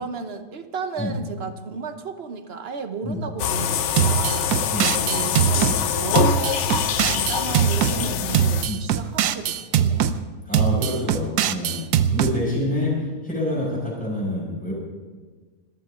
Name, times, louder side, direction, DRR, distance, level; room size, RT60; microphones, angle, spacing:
voice 1, 0.0-4.6 5.1-10.2 12.1-12.3, right 5 dB, 40° right, 8 dB, 1.1 m, -34 dB
sound 1, 3.4-9.0, left 8 dB, 65° left, 0.7 m, -24 dB
sound 2, 4.0-5.8 6.1-8.0 8.3-10.1 10.5-12.3, right 9 dB, 65° right, 1.2 m, -21 dB
voice 2, 4.7-5.0 7.9-8.3 8.6-8.8 10.5-11.8 12.1-14.7, left 1 dB, 5° left, -4 dB, 6.1 m, -27 dB
24.5 x 14.0 x 3.9 m, 1.4 s
omnidirectional pair, 1.9 m